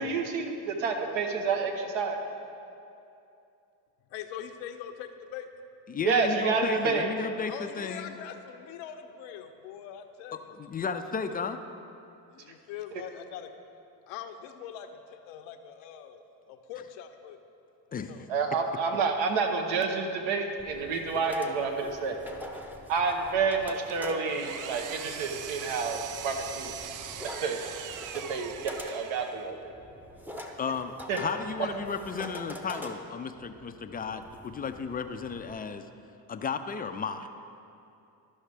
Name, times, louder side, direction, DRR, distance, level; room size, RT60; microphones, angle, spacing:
voice 1, 0.0-2.2 6.0-7.1 18.3-22.2 22.9-26.7 27.4-27.6 28.3-29.7 31.1-31.2, right 4 dB, 65° right, 4 dB, 1.1 m, -29 dB
voice 2, 4.1-5.5 7.5-10.5 11.3-11.5 12.3-13.5 14.1-16.2 16.5-17.4 17.9-18.3, left 9 dB, 70° left, 7 dB, 0.6 m, -42 dB
voice 3, 5.9-8.1 10.5-11.6 17.9-18.3 30.6-35.8 36.3-37.3, left 5 dB, 20° left, 8 dB, 0.3 m, -34 dB
sound 1, 20.6-35.6, equal, 5° right, 0.7 m, -45 dB
Engine, 23.9-29.6, right 9 dB, 40° right, 0.5 m, -41 dB
12.5 x 5.6 x 3.4 m, 2.7 s
hypercardioid pair, 55°, 49 cm